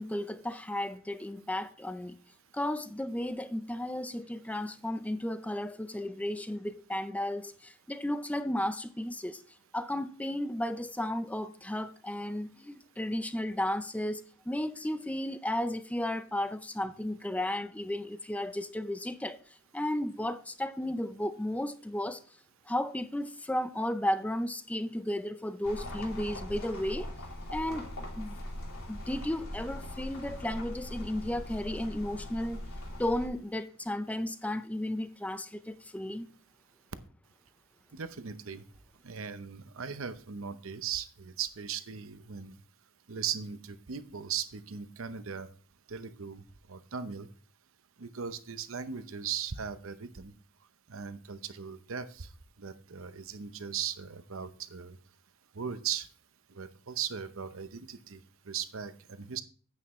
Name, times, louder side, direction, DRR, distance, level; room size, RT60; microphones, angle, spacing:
voice 1, 0.0-2.2 2.5-9.4 9.7-19.4 19.7-22.2 22.7-27.1 27.5-27.9 28.1-28.4 28.9-32.6 33.0-36.3, left 1 dB, 5° left, 0.5 m, -34 dB
sound 1, 25.6-33.3, left 1 dB, 90° left, 2.8 m, -41 dB
voice 2, 37.9-38.6 39.0-42.5 43.1-45.5 45.9-46.4 46.7-47.3 48.0-50.3 50.9-52.3 52.6-55.0 55.6-56.1 56.6-58.2 58.5-58.9 59.2-59.4, right 7 dB, 70° right, 0.8 m, -38 dB
9.5 x 8.4 x 3.1 m
head